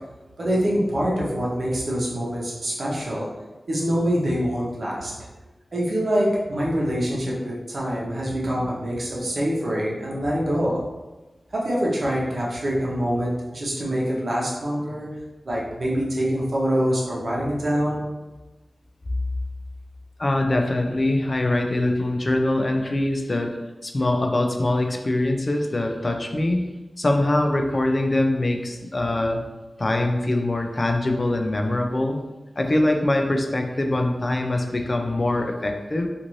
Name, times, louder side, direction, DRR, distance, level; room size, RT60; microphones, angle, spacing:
voice 1, 0.4-3.3 3.7-5.3 5.7-10.8 11.5-15.1 15.4-18.0, equal, 65° right, -5 dB, 0.8 m, -25 dB
voice 2, 20.2-23.6 23.8-26.6 27.0-29.4 29.8-32.2 32.6-36.1, left 1 dB, 45° left, 4 dB, 0.4 m, -23 dB
2.6 x 2.5 x 3.0 m, 1.1 s
cardioid pair, 50°, 0 cm